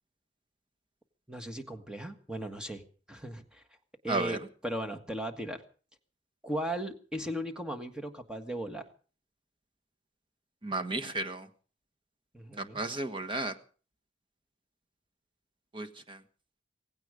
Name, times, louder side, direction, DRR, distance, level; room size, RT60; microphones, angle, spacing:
voice 1, 1.3-2.8 3.1-3.6 4.0-5.6 6.4-8.8 12.3-12.8, right 1 dB, 5° right, 7 dB, 1.6 m, -37 dB
voice 2, 4.1-4.4 10.6-11.5 12.6-13.5 15.7-16.2, right 2 dB, 30° right, 8 dB, 1.4 m, -33 dB
17.5 x 16.5 x 5.1 m, 0.40 s
head